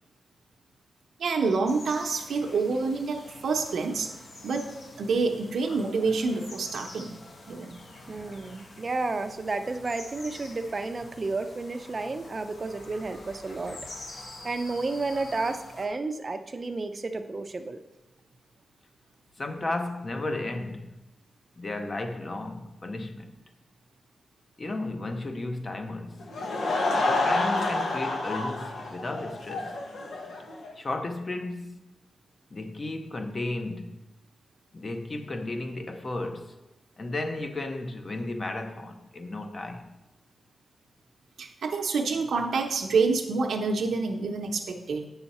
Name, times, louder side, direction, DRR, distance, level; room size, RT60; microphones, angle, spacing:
voice 1, 1.2-4.1 4.4-4.7 5.0-7.2 7.5-7.8 41.4-45.1, right 4 dB, 80° right, 0.7 m, -27 dB
sound 1, 1.7-15.9, left 2 dB, 55° left, 1.0 m, -46 dB
voice 2, 8.1-13.8 14.4-17.8, right 3 dB, 35° right, 0.5 m, -32 dB
voice 3, 19.4-20.9 21.6-23.3 24.6-26.3 27.0-29.8 30.8-31.8 32.5-34.0 34.7-36.5 37.0-39.9, left 2 dB, 35° left, 0.7 m, -34 dB
Laughter / Crowd, 26.2-30.7, left 2 dB, 85° left, 1.0 m, -28 dB
7.9 x 5.7 x 4.2 m
wide cardioid pair, 140°, 0 cm